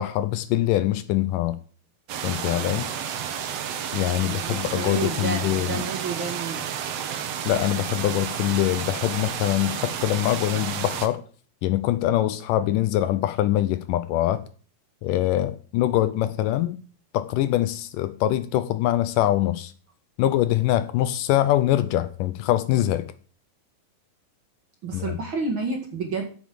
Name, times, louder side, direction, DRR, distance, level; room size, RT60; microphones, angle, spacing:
voice 1, 0.0-1.6 2.2-2.9 3.9-5.8 7.5-11.2 11.6-14.4 15.0-16.8 17.1-19.7 20.2-23.1 24.9-25.2, left 14 dB, 80° left, 2.1 m, -23 dB
sound 1, 2.1-11.1, right 8 dB, 65° right, 1.7 m, -31 dB
voice 2, 4.2-6.6 24.8-26.3, right 4 dB, 45° right, 2.1 m, -30 dB
8.5 x 7.3 x 7.6 m
omnidirectional pair, 4.0 m